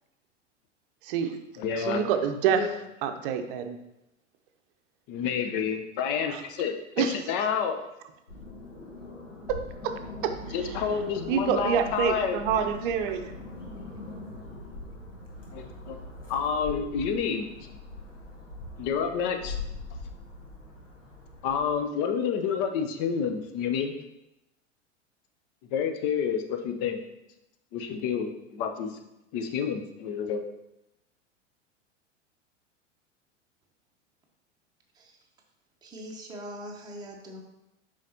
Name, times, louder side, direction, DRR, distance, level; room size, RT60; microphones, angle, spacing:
voice 1, 1.0-1.4 1.7-2.7 3.0-3.8 6.3-6.4 7.0-7.2 9.5-9.6 9.8-9.9 10.2-10.3 10.6-10.7 11.3-13.3, right 7 dB, 45° right, 7 dB, 0.7 m, -27 dB
voice 2, 1.6-2.1 2.6-2.7 5.1-7.8 10.5-12.4 15.5-16.0 16.3-17.5 18.8-19.6 21.4-23.9 25.7-27.0 27.7-28.9 29.3-30.4, left 6 dB, 40° left, 6 dB, 0.8 m, -29 dB
sound 1, 8.3-21.7, left 2 dB, 85° left, 1.2 m, -41 dB
voice 3, 35.8-37.4, equal, 10° right, -1 dB, 0.9 m, -42 dB
7.3 x 4.9 x 2.8 m, 0.89 s
figure-of-eight pair, 90°, 37 cm